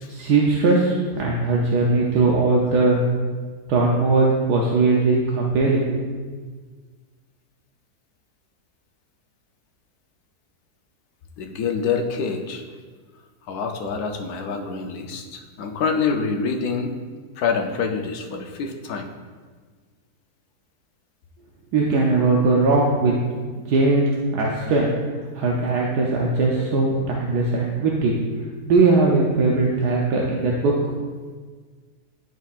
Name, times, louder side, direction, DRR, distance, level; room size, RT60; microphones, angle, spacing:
voice 1, 0.1-3.0 3.7-6.0 21.7-23.2 23.6-24.9 25.3-28.1 28.7-30.7, right 3 dB, 80° right, -2 dB, 1.3 m, -19 dB
voice 2, 11.4-12.6 13.5-16.9 17.3-19.1, left 5 dB, 75° left, 4 dB, 1.2 m, -26 dB
11.0 x 4.5 x 2.4 m, 1.5 s
omnidirectional pair, 1.7 m